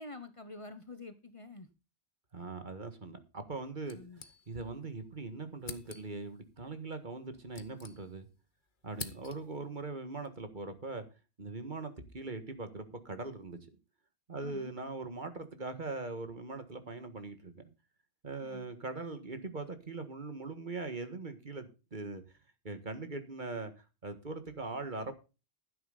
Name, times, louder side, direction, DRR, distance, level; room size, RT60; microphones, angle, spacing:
voice 1, 0.0-1.7 3.9-4.2 14.4-14.7 18.4-18.7, left 3 dB, 30° left, 1.1 m, -47 dB
voice 2, 2.3-4.0 4.5-8.3 8.8-11.0 11.4-13.6 14.3-17.7 18.2-22.2 22.6-25.1, right 3 dB, 50° right, 1.8 m, -41 dB
sound 1, 3.8-4.8 5.1-5.2 5.6-6.3 7.1-8.4 8.7-9.7, left 4 dB, 50° left, 1.4 m, -48 dB
12.0 x 10.0 x 4.0 m
omnidirectional pair, 1.1 m